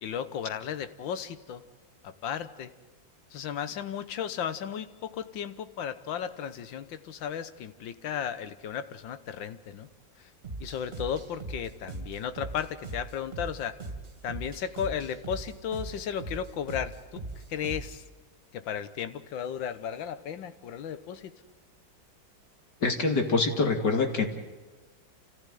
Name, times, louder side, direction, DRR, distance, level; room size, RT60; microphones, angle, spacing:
voice 1, 0.0-1.6 2.0-2.7 3.3-9.9 10.6-13.8 14.2-17.2 17.5-18.0 18.5-21.3, left 8 dB, 80° left, 12 dB, 1.8 m, -35 dB
sound 1, 10.4-18.1, right 2 dB, 30° right, 2.8 m, -40 dB
voice 2, 22.8-24.3, left 3 dB, 60° left, 4 dB, 3.0 m, -25 dB
29.0 x 15.0 x 9.3 m, 1.3 s
omnidirectional pair, 2.1 m